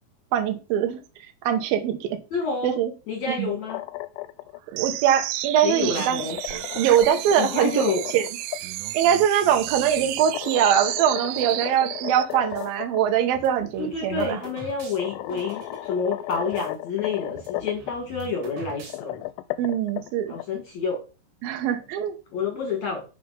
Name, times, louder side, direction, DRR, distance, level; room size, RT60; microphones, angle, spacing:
voice 1, 0.3-1.0 1.4-2.2 2.6-2.9 3.4-3.5 4.7-6.2 6.8-8.3 8.9-14.4 19.6-20.3 21.4-22.1, right 9 dB, 70° right, 6 dB, 2.4 m, -22 dB
voice 2, 2.3-2.7 3.1-3.8 5.6-6.4 7.4-8.0 13.8-19.3 20.3-21.0 22.3-23.0, left 5 dB, 65° left, 2 dB, 1.8 m, -28 dB
sound 1, 3.4-4.6 5.8-8.6 10.2-13.0 13.3-13.4 14.5-14.6 15.0-17.9 18.8-20.4, left 18 dB, 85° left, 3.0 m, -34 dB
sound 2, 4.8-12.3, right 15 dB, 85° right, 3.0 m, -32 dB
sound 3, 11.3-12.7 13.3-16.7 17.0-17.1 17.3-19.3, equal, 40° right, 2.6 m, -44 dB
8.0 x 5.1 x 5.4 m, 0.32 s
omnidirectional pair, 5.4 m